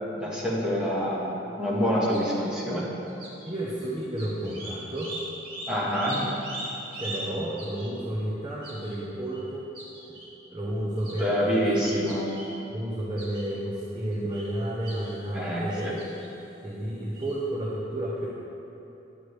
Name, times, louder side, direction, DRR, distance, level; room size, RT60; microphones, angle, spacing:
voice 1, 0.2-1.3 1.6-2.9 5.7-6.2 11.2-12.2 15.3-15.9, equal, 5° right, -7 dB, 1.4 m, -26 dB
sound 1, 2.1-2.4 3.0-3.5 3.8-3.9 4.2-7.3 7.6-7.9 8.6-9.0 9.3-9.4 9.8-10.3 11.0-11.3 11.8-12.5 13.2-13.5 14.1-14.5 14.8-15.2 15.7-16.3 17.1-17.3, right 1 dB, 50° right, 1.9 m, -40 dB
voice 2, 3.4-5.1 6.9-9.7 10.5-12.0 12.7-15.9 16.6-18.3, right 1 dB, 20° right, -7 dB, 0.8 m, -31 dB
10.0 x 7.7 x 3.3 m, 2.9 s
head